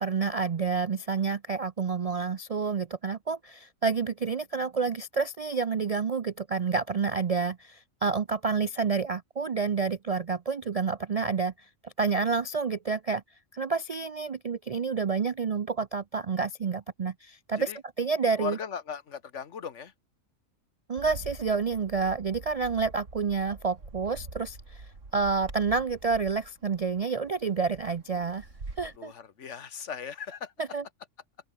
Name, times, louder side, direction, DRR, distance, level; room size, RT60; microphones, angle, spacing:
voice 1, 0.0-11.5 11.8-13.2 13.5-17.7 18.0-18.6 20.9-24.8 25.1-28.5 28.8-29.1 30.7-30.8, right 5 dB, 50° right, 0.4 m, -29 dB
voice 2, 18.4-19.9 29.0-30.5, left 7 dB, 65° left, 1.5 m, -38 dB
Bird, 21.0-29.0, right 3 dB, 70° right, 3.8 m, -45 dB
open air
omnidirectional pair, 1.3 m